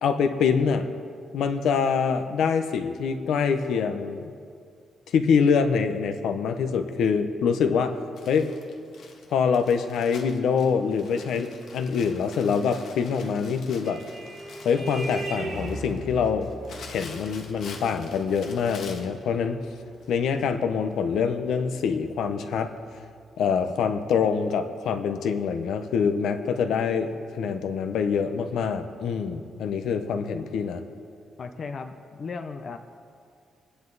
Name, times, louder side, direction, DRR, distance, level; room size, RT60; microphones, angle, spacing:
voice 1, 0.0-0.9 1.3-4.2 5.1-8.0 8.3-8.5 9.3-14.0 14.6-16.5 16.9-19.6 20.1-22.7 23.4-30.8, left 6 dB, 80° left, 8 dB, 0.9 m, -25 dB
Crumpling crinkling, 8.2-19.2 20.0-20.1 20.5-20.6, left 4 dB, 60° left, 1.5 m, -46 dB
Vehicle horn car horn honking, 13.2-22.2, right 1 dB, 45° right, 2.9 m, -40 dB
voice 2, 31.4-32.8, left 4 dB, 40° left, 7 dB, 0.6 m, -36 dB
23.5 x 10.0 x 4.0 m, 2.3 s
cardioid pair, 165°, 0 cm